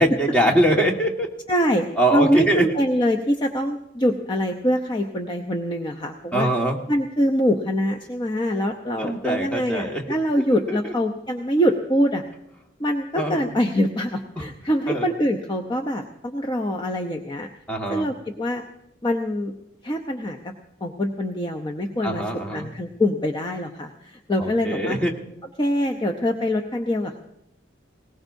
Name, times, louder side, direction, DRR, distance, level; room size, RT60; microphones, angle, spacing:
voice 1, 0.0-1.3 2.0-2.7 6.3-6.8 9.0-10.0 10.5-10.9 13.2-13.5 14.9-15.0 17.7-18.1 22.0-22.7 24.4-25.1, right 1 dB, 5° left, 0 dB, 1.6 m, -23 dB
voice 2, 1.5-6.5 6.9-12.2 12.8-17.5 17.9-18.6 19.0-19.5 19.8-20.5 20.8-22.2 22.5-25.0 25.6-27.2, equal, 25° left, 3 dB, 0.7 m, -24 dB
20.5 x 19.0 x 2.7 m, 0.82 s
head